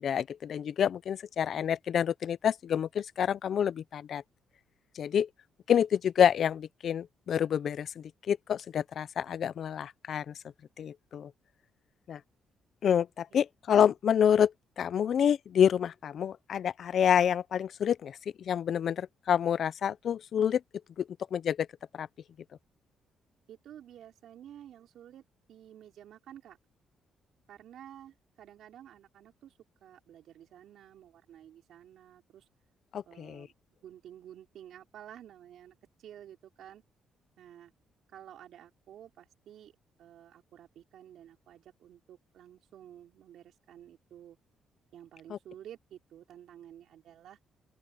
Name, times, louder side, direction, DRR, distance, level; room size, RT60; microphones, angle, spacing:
voice 1, 0.0-4.2 5.0-5.3 5.7-10.3 10.8-11.3 12.1-12.2 12.8-20.6 21.0-21.7 21.9-22.1 32.9-33.5 45.3-45.4, left 8 dB, 60° left, 0.6 m, -28 dB
voice 2, 23.5-25.2 25.5-26.6 27.5-29.5 29.8-32.5 33.1-33.5 33.8-36.8 37.4-37.8 38.1-39.7 40.0-44.4 44.9-47.4, right 10 dB, 75° right, 5.4 m, -51 dB
open air
cardioid pair, 90°, 0 cm